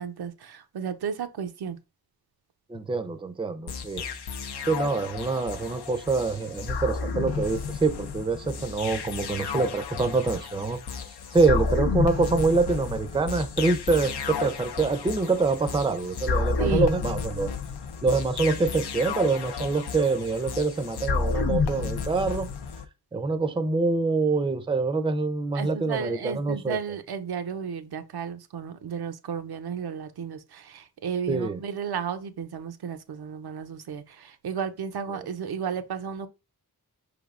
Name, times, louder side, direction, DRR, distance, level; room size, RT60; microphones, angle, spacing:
voice 1, 0.0-1.8 16.6-16.9 25.5-36.3, right 7 dB, 80° right, 0.6 m, -33 dB
voice 2, 2.7-4.0 4.7-10.8 11.3-17.5 18.0-22.5 23.1-26.8 31.3-31.6 35.1-35.3, right 3 dB, 15° right, 0.4 m, -25 dB
sound 1, 3.7-22.9, left 5 dB, 85° left, 0.6 m, -31 dB
4.8 x 3.3 x 2.4 m
wide cardioid pair, 75°, 38 cm